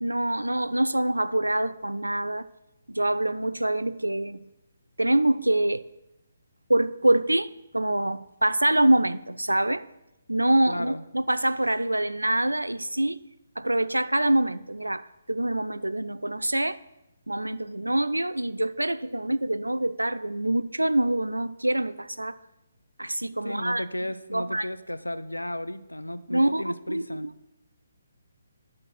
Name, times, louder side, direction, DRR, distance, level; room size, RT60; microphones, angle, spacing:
voice 1, 0.0-2.5 2.9-4.4 5.0-5.9 6.7-9.8 10.3-13.2 13.6-16.8 17.3-22.4 23.0-23.8 24.3-24.7 26.3-27.3, right 1 dB, 80° right, 0.4 m, -25 dB
voice 2, 10.7-11.0 23.4-27.3, left 1 dB, 85° left, 0.5 m, -34 dB
10.5 x 4.3 x 6.2 m
figure-of-eight pair, 140°, 0 cm